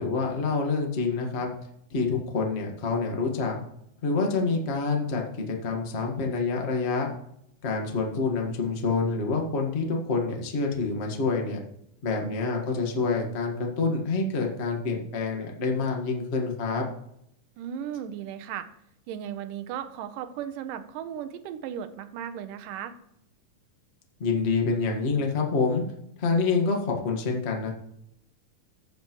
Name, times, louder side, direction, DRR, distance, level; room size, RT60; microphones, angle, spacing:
voice 1, 0.0-1.5 1.9-3.6 4.0-7.1 7.6-11.6 12.0-16.9 24.2-25.8 26.2-27.7, left 4 dB, 50° left, 1 dB, 0.7 m, -27 dB
voice 2, 17.6-18.7 19.1-22.9, right 9 dB, 80° right, 10 dB, 2.3 m, -36 dB
16.0 x 5.9 x 3.0 m, 0.75 s
omnidirectional pair, 3.9 m